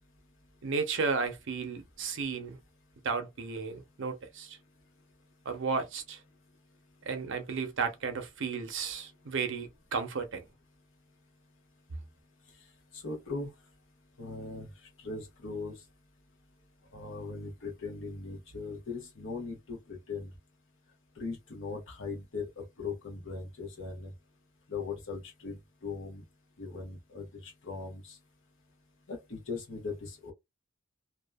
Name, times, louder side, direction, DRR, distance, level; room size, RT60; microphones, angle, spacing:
voice 1, 0.6-2.6 3.0-4.6 5.4-6.2 7.1-10.4, right 5 dB, 65° right, 0.7 m, -33 dB
voice 2, 12.9-13.5 14.2-14.7 15.0-15.8 16.9-20.3 21.2-24.1 24.7-26.2 26.6-28.2 29.1-30.3, left 4 dB, 65° left, 1.0 m, -39 dB
2.7 x 2.3 x 2.2 m
head